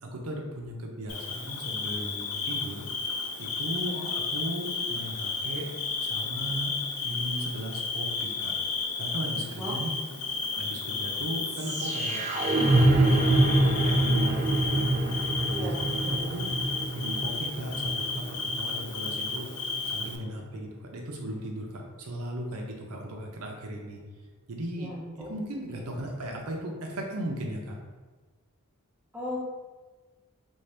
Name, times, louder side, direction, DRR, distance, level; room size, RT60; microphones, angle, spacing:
voice 1, 0.0-2.9 3.4-5.7 6.0-6.7 7.0-8.7 9.0-9.9 10.5-16.4 16.9-19.5 19.8-24.0 24.5-24.9 25.2-27.8, right 1 dB, 80° right, 1 dB, 0.6 m, -37 dB
Bird / Cricket, 1.1-20.2, left 4 dB, 80° left, 0.5 m, -33 dB
sound 1, 10.4-20.4, right 1 dB, 30° right, 0.3 m, -26 dB
voice 2, 15.5-16.3 24.8-25.3 29.1-29.4, left 1 dB, 5° right, -5 dB, 0.7 m, -37 dB
3.5 x 2.7 x 3.3 m, 1.3 s
head